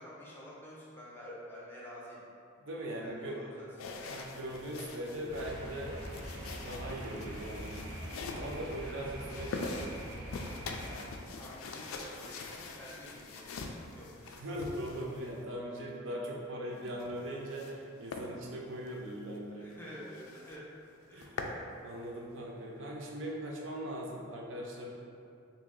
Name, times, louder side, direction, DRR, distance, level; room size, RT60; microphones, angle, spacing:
voice 1, 0.0-2.2 2.9-4.1 8.8-9.0 10.8-14.1 19.5-20.7 21.1-21.3, equal, 10° left, -6 dB, 0.5 m, -49 dB
voice 2, 2.6-3.4 4.1-6.0 6.4-7.8 8.3-10.0 14.2-19.7 21.1-24.9, right 1 dB, 65° right, -2 dB, 0.5 m, -40 dB
sound 1, 3.8-15.4 16.7-17.8 18.1-18.3 18.8-18.9 19.3-19.4 19.7-19.8 20.1-20.6 20.9-21.6, left 3 dB, 90° left, 0.3 m, -44 dB
sound 2, 5.3-11.0, equal, 85° right, 0.9 m, -43 dB
2.8 x 2.6 x 3.8 m, 2.5 s
head